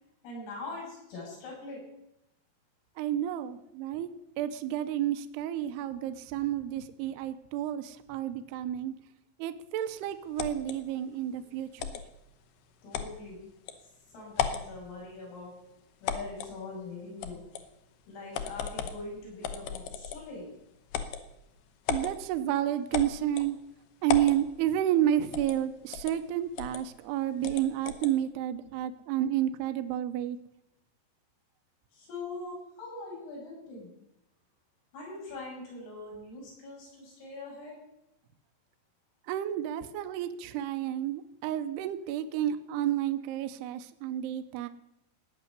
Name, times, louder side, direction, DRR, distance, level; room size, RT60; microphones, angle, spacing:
voice 1, 0.2-1.8 12.8-13.4 14.1-15.5 16.0-17.4 18.1-20.5 31.9-33.9 34.9-37.8, left 3 dB, 90° left, -4 dB, 9.5 m, -42 dB
voice 2, 3.0-4.1 4.4-8.9 9.4-12.0 21.9-23.6 24.0-30.4 39.3-44.7, right 11 dB, 80° right, 9 dB, 2.5 m, -30 dB
sound 1, 10.4-10.8 11.8-12.0 12.9-13.1 13.7-13.8 14.3-14.7 16.1-16.5 17.2-17.7 18.3-19.0 19.4-20.3 20.9-21.2 21.9-22.1 22.9-23.5 24.1-24.4 25.3-25.6 25.9-26.1 26.6-26.8 27.4-28.1, left 8 dB, 70° left, 2.6 m, -34 dB
17.5 x 6.9 x 9.7 m, 0.87 s
omnidirectional pair, 5.7 m